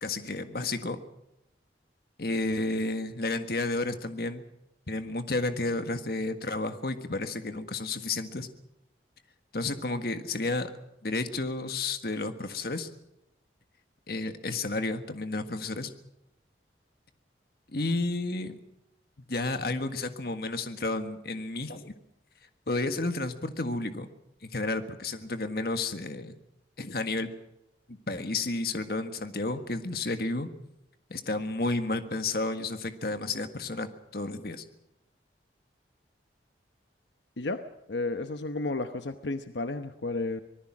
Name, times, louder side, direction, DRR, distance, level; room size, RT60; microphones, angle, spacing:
voice 1, 0.0-1.0 2.2-4.4 4.9-8.5 9.5-10.7 11.0-12.9 14.1-15.9 17.7-18.5 19.3-21.9 22.7-24.1 24.4-26.3 26.8-27.3 27.9-30.5 31.1-34.6, left 2 dB, 55° left, 8 dB, 1.6 m, -31 dB
voice 2, 37.9-40.4, left 2 dB, 80° left, 9 dB, 1.0 m, -32 dB
25.0 x 19.5 x 6.2 m, 0.84 s
head